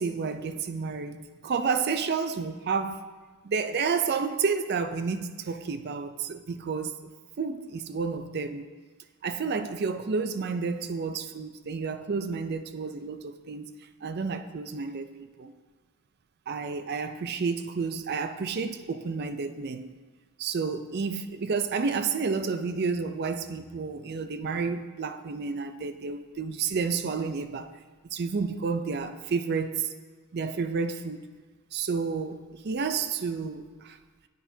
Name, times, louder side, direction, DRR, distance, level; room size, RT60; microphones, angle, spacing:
voice 1, 0.0-3.0 3.4-6.9 7.4-8.7 9.2-13.7 14.0-15.5 16.5-20.0 20.4-27.8 28.1-29.9 30.3-31.2 31.7-34.0, right 5 dB, 50° right, 10 dB, 0.4 m, -30 dB
10.0 x 7.8 x 2.7 m, 1.4 s
head